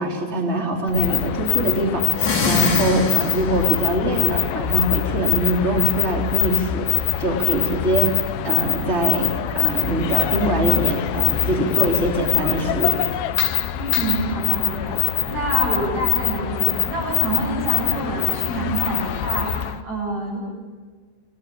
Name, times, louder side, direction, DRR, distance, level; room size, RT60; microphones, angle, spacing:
voice 1, 0.0-13.1, right 1 dB, 15° right, 0 dB, 3.3 m, -23 dB
sound 1, 0.9-19.8, left 13 dB, 75° left, 2.7 m, -23 dB
sound 2, 2.1-3.7, left 3 dB, 30° left, 3.0 m, -23 dB
voice 2, 13.8-20.4, right 2 dB, 35° right, -7 dB, 9.2 m, -27 dB
28.5 x 19.0 x 8.7 m, 1.5 s
omnidirectional pair, 5.4 m